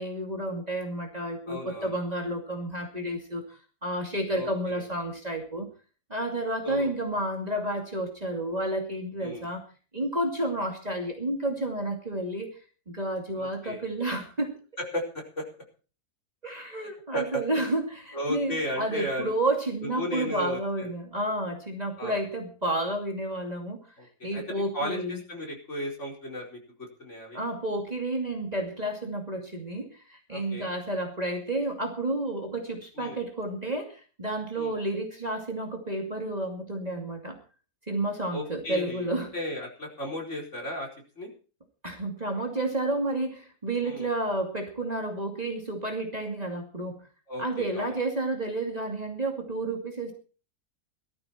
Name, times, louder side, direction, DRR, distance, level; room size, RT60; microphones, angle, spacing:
voice 1, 0.0-5.7 6.1-9.6 9.9-12.6 12.9-14.5 16.4-23.8 24.2-25.2 27.3-37.4 37.9-39.3 41.8-47.0 47.4-50.1, right 1 dB, 25° right, 2 dB, 2.6 m, -31 dB
voice 2, 1.5-1.9 4.3-4.8 6.6-7.0 9.2-9.5 13.3-13.8 14.8-15.4 16.8-17.4 18.1-19.3 19.8-20.9 22.0-22.2 24.0-27.4 30.3-30.7 33.0-33.2 34.6-34.7 38.3-39.1 39.3-40.9 41.2-41.3 43.8-44.1 47.3-47.9, equal, 45° left, 0 dB, 5.0 m, -35 dB
17.5 x 13.5 x 4.4 m, 0.38 s
omnidirectional pair, 1.7 m